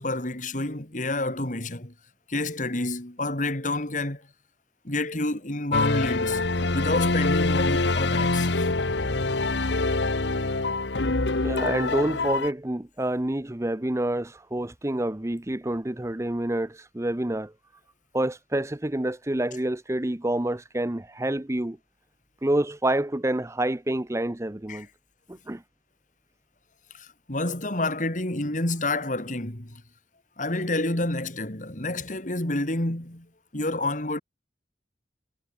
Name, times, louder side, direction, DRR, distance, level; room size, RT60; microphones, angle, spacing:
voice 1, 0.0-1.9 2.3-4.2 4.8-6.4 6.7-8.7 24.7-24.9 26.9-29.8 30.4-33.3 33.5-34.2, left 2 dB, 45° left, 3.2 m, -29 dB
sound 1, 5.7-12.5, left 2 dB, 80° left, 1.5 m, -25 dB
voice 2, 11.4-17.5 18.1-21.8 22.4-24.9 25.5-25.6, right 1 dB, 15° right, 0.7 m, -27 dB
head